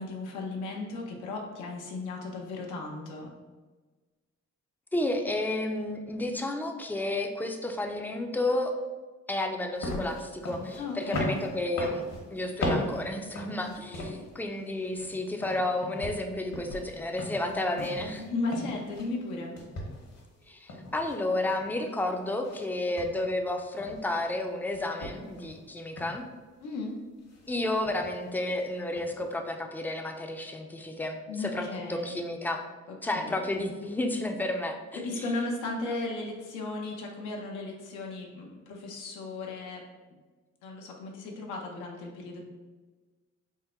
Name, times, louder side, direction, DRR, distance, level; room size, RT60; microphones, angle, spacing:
voice 1, 0.0-3.3 10.8-11.3 18.2-19.6 26.6-27.0 31.3-32.2 32.9-33.5 35.0-39.8 40.6-42.4, left 3 dB, 90° left, 0 dB, 0.7 m, -36 dB
voice 2, 4.9-8.8 9.3-18.2 20.5-26.3 27.5-32.6 33.0-35.0, left 1 dB, 5° left, 4 dB, 0.4 m, -31 dB
sound 1, 9.8-14.4 14.8-19.3 19.6-21.9 22.4-22.7 23.0-24.4 24.7-25.6 26.0-26.2 27.2-27.5 27.8-28.3 28.5-28.6 28.9-29.3, left 1 dB, 60° left, 1.1 m, -37 dB
3.6 x 2.1 x 4.2 m, 1.3 s
cardioid pair, 90°, 30 cm